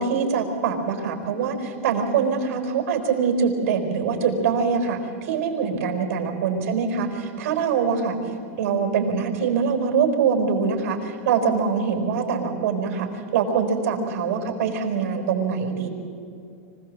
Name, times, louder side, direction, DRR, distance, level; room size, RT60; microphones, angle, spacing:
voice 1, 0.0-8.2 8.6-15.9, right 6 dB, 45° right, 4 dB, 4.3 m, -24 dB
25.5 x 17.0 x 7.6 m, 2.6 s
supercardioid pair, 165°, 8 cm